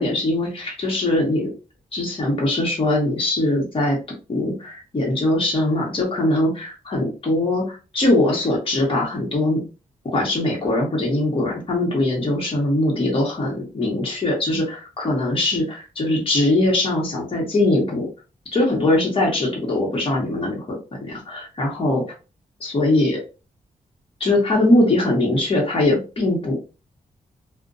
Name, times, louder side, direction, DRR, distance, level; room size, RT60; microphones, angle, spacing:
voice 1, 0.0-1.5 1.9-4.0 4.3-9.6 10.1-18.1 18.5-22.0 22.6-23.2 24.2-26.5, left 1 dB, 40° left, -3 dB, 1.0 m, -21 dB
2.4 x 2.1 x 2.5 m, 0.32 s
wide cardioid pair, 110°, 14 cm